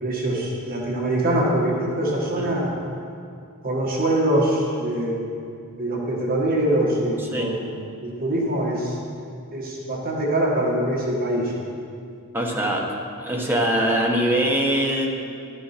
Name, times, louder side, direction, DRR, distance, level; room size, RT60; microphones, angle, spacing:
voice 1, 0.0-2.7 3.6-5.2 5.8-7.7 8.0-9.0 9.5-11.5, right 1 dB, 40° right, -2 dB, 1.5 m, -23 dB
voice 2, 7.2-7.5 12.3-12.8 13.2-15.1, right 1 dB, 10° right, -1 dB, 1.4 m, -22 dB
12.0 x 10.0 x 4.4 m, 2.4 s
head